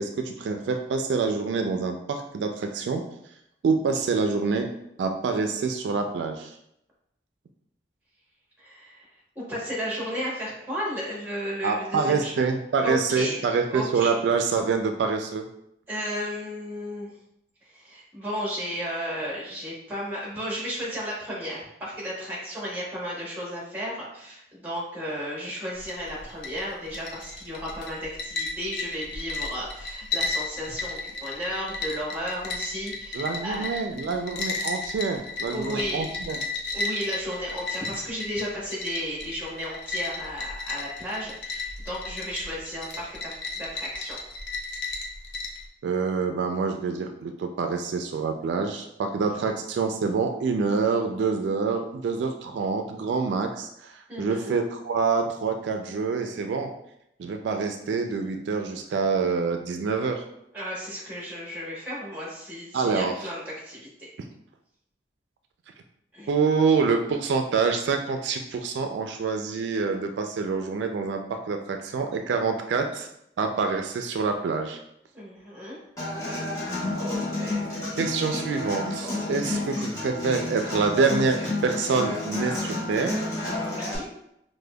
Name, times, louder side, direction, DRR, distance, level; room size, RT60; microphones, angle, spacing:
voice 1, 0.0-3.0 3.6-4.7 5.0-6.5 11.6-15.5 33.1-36.4 45.8-56.7 57.2-60.2 62.7-63.1 66.3-73.1 73.4-74.8 78.0-83.2, right 4 dB, 80° right, 5 dB, 0.3 m, -26 dB
voice 2, 8.6-9.1 9.3-12.3 12.8-13.4 13.7-14.1 15.9-17.1 17.6-33.7 35.5-36.1 36.7-44.2 54.1-54.5 60.5-63.9 66.1-66.3 66.7-66.8 75.1-75.8 79.4-79.7 83.7-84.0, equal, 10° right, -5 dB, 1.0 m, -34 dB
sound 1, 25.7-45.6, left 3 dB, 75° left, 0.5 m, -34 dB
Human voice / Acoustic guitar, 76.0-84.0, left 2 dB, 20° left, 0.9 m, -30 dB
4.9 x 2.1 x 2.2 m, 0.79 s
head